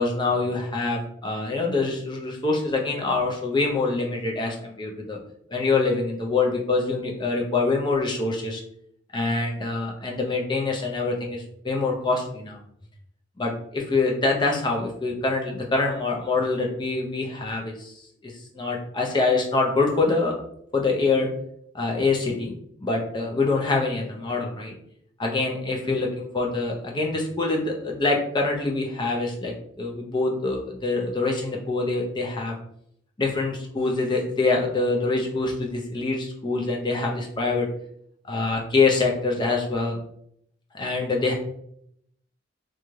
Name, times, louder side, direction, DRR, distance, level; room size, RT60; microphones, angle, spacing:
voice 1, 0.0-5.2 5.5-8.6 9.1-12.6 13.4-17.9 18.2-20.3 20.7-21.3 21.7-22.5 22.8-24.7 25.2-32.5 33.2-37.7 38.3-40.0 40.7-41.3, left 3 dB, 25° left, 0 dB, 0.5 m, -25 dB
2.6 x 2.3 x 3.1 m, 0.71 s
head